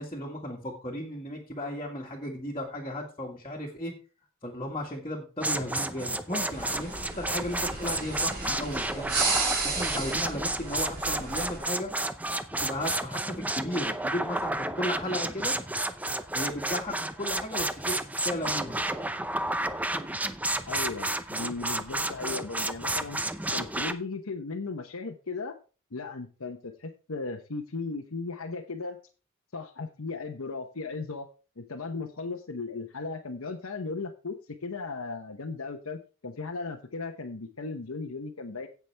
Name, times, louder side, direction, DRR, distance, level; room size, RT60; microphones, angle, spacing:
voice 1, 0.0-3.9 4.4-9.2 9.6-11.9 12.6-15.5 16.1-18.8, left 1 dB, 25° left, -2 dB, 1.9 m, -35 dB
sound 1, 5.4-23.9, right 2 dB, 5° right, 0.6 m, -31 dB
sound 2, 6.5-11.6, right 4 dB, 45° right, 3.4 m, -33 dB
voice 2, 20.7-23.2 23.5-25.5 25.9-29.0 29.5-31.3 31.6-38.7, left 3 dB, 70° left, 2 dB, 1.0 m, -36 dB
16.5 x 6.0 x 3.4 m, 0.35 s
head